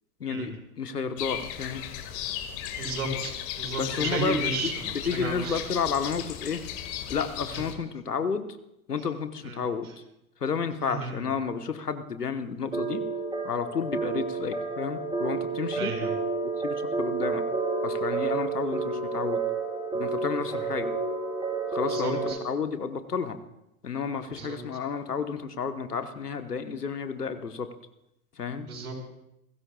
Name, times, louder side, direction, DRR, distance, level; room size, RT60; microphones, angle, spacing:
voice 1, 0.2-1.8 3.8-6.6 7.1-8.5 8.9-9.9 10.4-13.0 13.4-15.9 16.4-17.4 17.8-19.4 19.9-20.9 21.7-23.4 23.8-27.7 28.4-28.7, left 6 dB, 85° left, 9 dB, 1.4 m, -31 dB
sound 1, 1.2-7.7, left 11 dB, 40° left, 2.1 m, -35 dB
voice 2, 2.8-4.7 5.1-5.6 7.5-7.6 9.4-9.6 10.9-11.2 15.7-16.1 21.9-22.4 24.3-24.6 28.7-29.0, right 3 dB, 70° right, 2 dB, 4.9 m, -33 dB
sound 2, 12.7-22.3, right 4 dB, 10° right, 6.3 m, -30 dB
29.5 x 15.5 x 2.4 m, 0.84 s
figure-of-eight pair, 95°, 46 cm